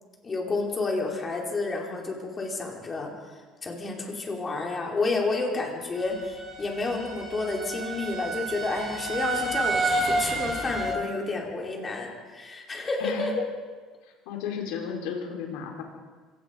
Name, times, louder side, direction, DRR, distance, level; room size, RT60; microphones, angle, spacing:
voice 1, 0.2-3.1 3.6-13.3, left 3 dB, 25° left, 0 dB, 4.7 m, -30 dB
sound 1, 6.0-11.0, right 2 dB, 30° right, 4.6 m, -30 dB
voice 2, 14.2-15.8, left 7 dB, 85° left, 1 dB, 4.9 m, -33 dB
26.5 x 18.5 x 5.4 m, 1.5 s
cardioid pair, 125°, 0 cm